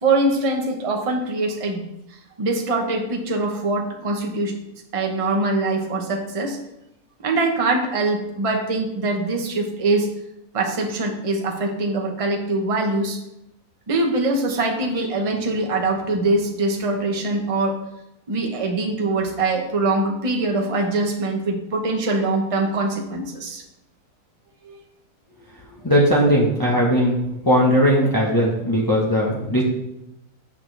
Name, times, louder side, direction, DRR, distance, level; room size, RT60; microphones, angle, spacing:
voice 1, 0.0-1.8 2.4-4.6 4.9-6.6 7.2-10.1 10.5-13.2 13.9-17.8 18.3-23.6 24.6-24.8, right 2 dB, 25° right, 2 dB, 0.9 m, -23 dB
voice 2, 25.8-27.2 27.4-29.6, equal, 15° left, -5 dB, 1.1 m, -18 dB
8.6 x 6.4 x 3.3 m, 0.87 s
omnidirectional pair, 1.7 m